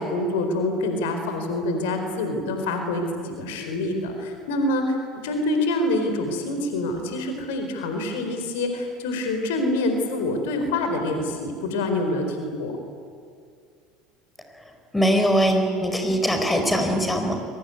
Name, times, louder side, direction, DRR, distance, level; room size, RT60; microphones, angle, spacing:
voice 1, 0.0-5.0 5.2-12.7, left 2 dB, 65° left, 6 dB, 4.5 m, -26 dB
voice 2, 14.9-17.3, equal, 10° left, 5 dB, 4.8 m, -21 dB
24.5 x 23.5 x 9.5 m, 2.2 s
figure-of-eight pair, 70°, 0 cm